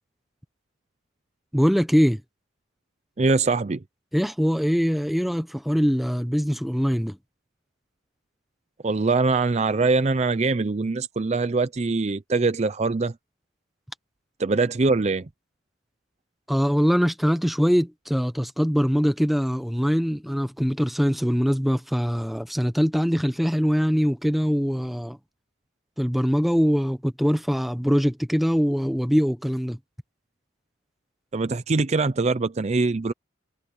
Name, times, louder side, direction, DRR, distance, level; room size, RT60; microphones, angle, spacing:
voice 1, 1.5-2.2 4.1-7.2 16.5-25.2 26.0-29.8, equal, ahead, 1.1 m, -22 dB
voice 2, 3.2-3.8 8.8-13.1 14.4-15.3 31.3-33.1, right 3 dB, 35° right, 0.5 m, -23 dB
head